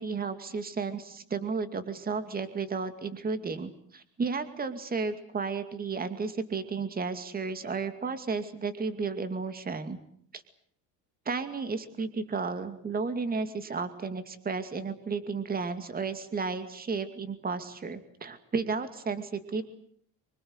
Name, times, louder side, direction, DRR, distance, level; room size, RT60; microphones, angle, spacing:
voice 1, 0.0-10.0 10.3-10.4 11.3-19.6, right 4 dB, 20° right, 10 dB, 2.4 m, -33 dB
25.5 x 23.0 x 8.0 m, 0.63 s
cardioid pair, 140°, 41 cm